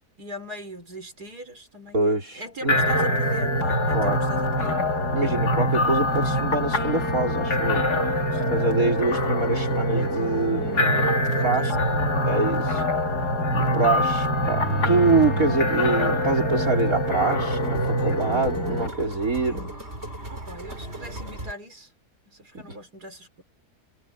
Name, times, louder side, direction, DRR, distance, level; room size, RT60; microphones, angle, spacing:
voice 1, 0.2-4.8 8.3-8.6 11.2-12.1 20.3-21.9 22.3-23.4, equal, 80° right, 6.5 m, -40 dB
voice 2, 1.9-2.8 3.9-4.2 5.1-7.9 8.5-11.2 11.4-11.7 12.3-12.8 13.5-19.8 22.6-22.8, right 3 dB, 60° right, 5.4 m, -25 dB
sound 1, 2.7-18.9, left 1 dB, 85° left, 3.3 m, -24 dB
sound 2, 14.2-15.6 16.1-21.5, right 1 dB, 40° right, 4.9 m, -34 dB
omnidirectional pair, 1.7 m